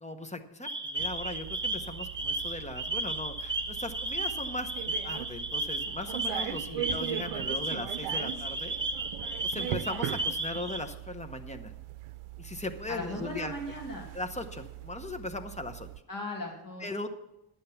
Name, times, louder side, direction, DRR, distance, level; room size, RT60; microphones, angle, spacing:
voice 1, 0.0-8.7 9.4-11.7 12.4-13.6 14.1-15.9 16.8-17.1, left 2 dB, 15° left, 6 dB, 0.8 m, -38 dB
sound 1, 0.6-10.8, right 2 dB, 25° right, 1.2 m, -34 dB
sound 2, 1.0-16.0, right 13 dB, 85° right, 0.6 m, -40 dB
voice 2, 12.9-14.1 16.1-16.9, left 1 dB, 40° left, 1 dB, 2.1 m, -38 dB
11.0 x 8.9 x 5.7 m, 0.90 s
cardioid pair, 125°, 49 cm